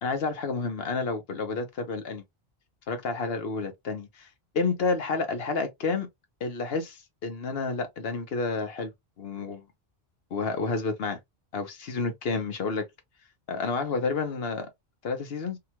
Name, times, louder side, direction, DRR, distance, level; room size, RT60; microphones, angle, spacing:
voice 1, 0.0-2.2 2.9-4.3 4.5-6.1 6.4-8.9 9.2-9.6 10.3-11.2 11.5-12.9 13.5-14.7 15.0-15.6, left 4 dB, 70° left, 1.1 m, -30 dB
2.8 x 2.3 x 2.9 m
omnidirectional pair, 1.0 m